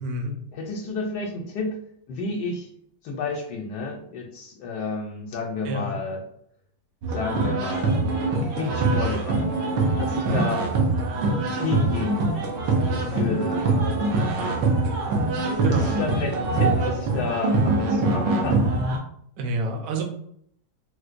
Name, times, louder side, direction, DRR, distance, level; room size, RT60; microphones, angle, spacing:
voice 1, 0.0-0.3 5.6-6.0 10.2-10.5 15.6-15.9 19.4-20.0, right 2 dB, 70° right, 2 dB, 1.0 m, -27 dB
voice 2, 0.5-1.8 2.1-2.7 3.0-6.2 7.1-9.5 10.0-10.6 11.6-12.3 13.0-13.7 15.7-18.6, left 4 dB, 75° left, 0 dB, 1.2 m, -31 dB
sound 1, 7.0-19.0, right 3 dB, 90° right, 1.4 m, -23 dB
4.2 x 2.2 x 2.5 m, 0.68 s
omnidirectional pair, 1.8 m